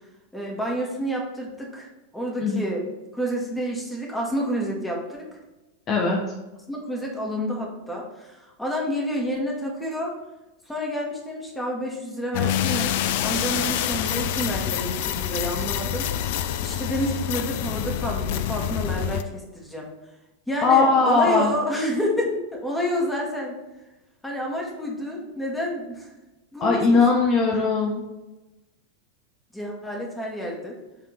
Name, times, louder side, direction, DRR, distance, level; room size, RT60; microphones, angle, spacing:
voice 1, 0.3-2.8 3.1-5.3 6.7-10.2 10.6-12.9 13.2-16.1 16.6-19.9 20.5-23.6 24.2-26.1 26.5-27.0 29.5-30.8, equal, 5° left, -2 dB, 1.6 m, -29 dB
voice 2, 5.9-6.2 20.6-21.5 26.6-28.0, left 4 dB, 30° left, -2 dB, 1.0 m, -19 dB
sound 1, 12.3-19.2, left 10 dB, 50° left, 0.4 m, -26 dB
7.7 x 3.5 x 4.4 m, 1.1 s
figure-of-eight pair, 90°, 0 cm